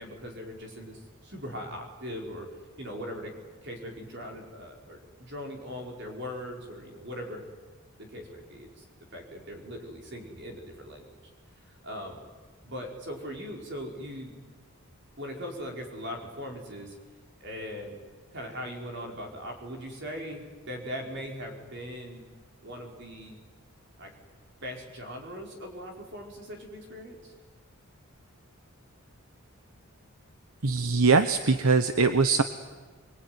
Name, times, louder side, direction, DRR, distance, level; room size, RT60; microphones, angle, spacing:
voice 1, 0.0-2.5 2.8-3.4 3.6-7.4 8.0-8.8 9.1-11.2 11.6-12.2 12.6-14.3 15.2-16.9 17.4-18.0 18.3-22.2 22.6-23.4 24.0-24.1 24.6-27.3, equal, 50° right, 1 dB, 5.0 m, -40 dB
voice 2, 30.6-32.4, right 4 dB, 75° right, 10 dB, 1.0 m, -22 dB
25.0 x 23.0 x 9.5 m, 1.4 s
head